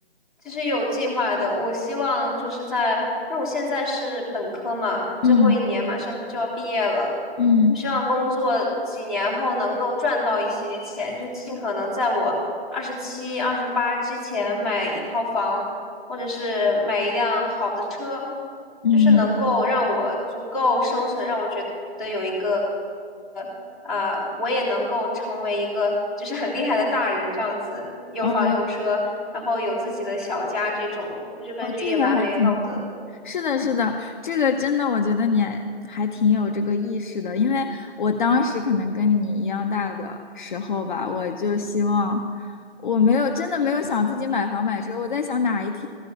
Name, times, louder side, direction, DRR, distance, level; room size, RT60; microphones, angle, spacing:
voice 1, 0.4-3.0 3.3-7.1 7.8-12.4 12.7-15.7 16.1-18.3 18.9-21.7 22.0-22.6 23.3-23.5 23.8-29.0 29.3-32.8, left 2 dB, ahead, -7 dB, 1.9 m, -25 dB
voice 2, 5.2-5.6 7.4-7.8 18.8-19.3 28.2-28.6 31.6-32.8 33.2-42.5 42.8-45.9, left 5 dB, 50° left, 4 dB, 0.6 m, -22 dB
14.0 x 5.2 x 8.2 m, 2.1 s
hypercardioid pair, 155°, 32 cm